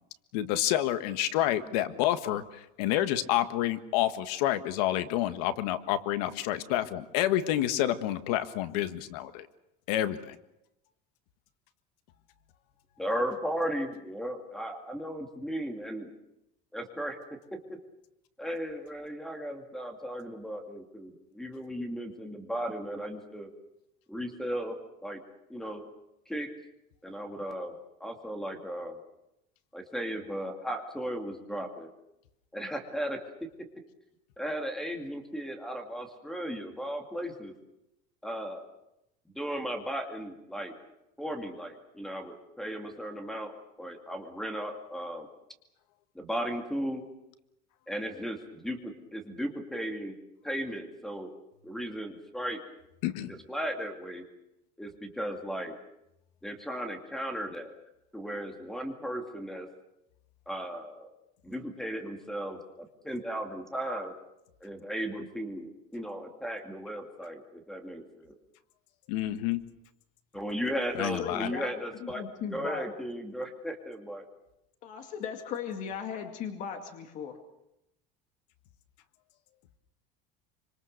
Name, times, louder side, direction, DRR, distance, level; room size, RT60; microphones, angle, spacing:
voice 1, 0.3-9.5 9.9-10.4 53.0-53.3 69.1-69.6 71.0-71.5, left 13 dB, 80° left, 11 dB, 1.6 m, -29 dB
voice 2, 13.0-16.1 16.7-17.2 17.7-17.8 18.4-23.5 24.1-24.8 25.0-25.2 25.5-25.8 26.3-26.5 27.0-29.0 29.7-31.9 32.5-33.2 34.4-37.5 38.2-38.7 39.3-40.7 41.2-43.5 43.8-45.3 46.1-47.1 47.9-50.2 50.4-51.3 51.6-52.6 53.3-54.2 54.8-55.7 56.4-57.7 58.1-59.7 60.5-61.1 61.4-64.1 64.6-68.4 70.3-74.2, equal, ahead, 5 dB, 2.4 m, -36 dB
voice 3, 71.2-71.7 72.0-72.9 74.8-77.4, left 7 dB, 40° left, 6 dB, 2.3 m, -37 dB
25.5 x 25.5 x 6.7 m, 0.86 s
cardioid pair, 175°, 20 cm